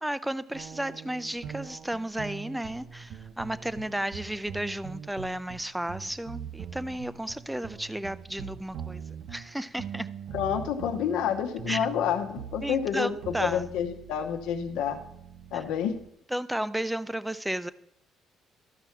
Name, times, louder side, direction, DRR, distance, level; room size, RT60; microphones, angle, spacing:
voice 1, 0.0-9.0 9.3-10.1 11.7-11.9 12.6-13.6 15.5-15.6 16.3-17.7, right 1 dB, 5° right, 15 dB, 0.3 m, -33 dB
sound 1, 0.5-16.1, right 8 dB, 60° right, 0.5 m, -42 dB
voice 2, 10.3-15.0 15.5-16.0, left 8 dB, 90° left, 5 dB, 1.0 m, -29 dB
12.5 x 5.9 x 4.5 m, 0.76 s
cardioid pair, 130°, 0 cm